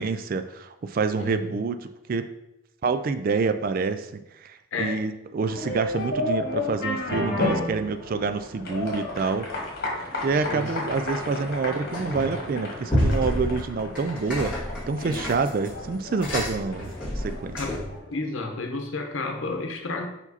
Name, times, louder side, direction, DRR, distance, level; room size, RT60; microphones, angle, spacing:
voice 1, 0.0-2.3 2.8-9.5 10.2-17.6, right 4 dB, 40° right, 10 dB, 0.3 m, -27 dB
voice 2, 1.2-1.5 4.7-5.0 10.5-10.9 15.0-15.3 17.4-17.9 18.1-20.1, left 3 dB, 60° left, 3 dB, 0.9 m, -31 dB
sound 1, 5.4-18.2, left 2 dB, 45° left, 1.6 m, -32 dB
sound 2, 11.9-12.4 12.9-18.0, equal, 5° right, 1.8 m, -29 dB
5.2 x 4.9 x 4.1 m, 0.90 s
head